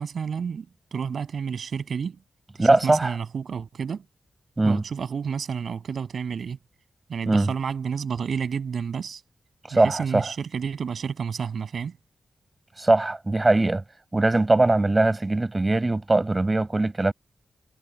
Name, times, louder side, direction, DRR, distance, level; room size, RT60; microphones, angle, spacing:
voice 1, 0.0-2.2 2.6-4.0 4.6-6.6 7.1-9.2 9.7-12.0, right 6 dB, 75° right, 7.1 m, -30 dB
voice 2, 2.6-3.2 4.6-4.8 7.3-7.5 9.7-10.3 12.8-13.8 14.1-17.1, right 2 dB, 25° right, 7.2 m, -21 dB
wide cardioid pair, 90°, 0 cm